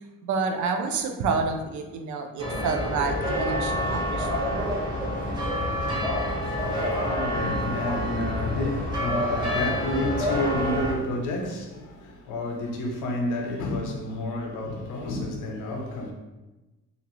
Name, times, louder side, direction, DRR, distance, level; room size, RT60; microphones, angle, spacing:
voice 1, 0.2-4.6, right 4 dB, 75° right, 0.5 m, -29 dB
sound 1, 2.4-10.9, left 1 dB, 15° right, 1.2 m, -27 dB
voice 2, 6.4-16.1, left 1 dB, 85° left, 0.7 m, -30 dB
2.8 x 2.5 x 3.0 m
cardioid pair, 90°, 30 cm